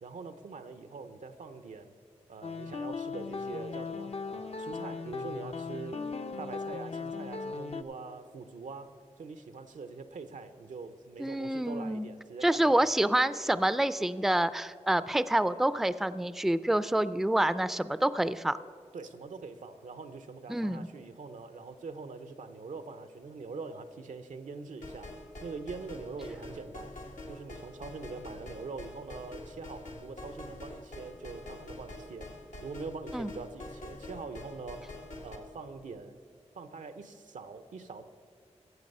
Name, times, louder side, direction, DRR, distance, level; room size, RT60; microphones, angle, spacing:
voice 1, 0.0-1.9 2.3-6.0 6.4-8.9 9.2-12.9 18.9-25.1 25.4-27.0 27.3-34.9 35.2-36.2 36.5-38.0, right 4 dB, 85° right, 10 dB, 0.7 m, -43 dB
sound 1, 2.4-7.8, left 4 dB, 55° left, 0.6 m, -38 dB
voice 2, 11.2-12.1 12.4-18.6 20.5-20.9 33.1-33.3, right 1 dB, ahead, 15 dB, 0.4 m, -27 dB
sound 2, 24.8-35.4, left 2 dB, 85° left, 1.4 m, -45 dB
16.0 x 7.2 x 5.4 m, 2.2 s
cardioid pair, 45°, 13 cm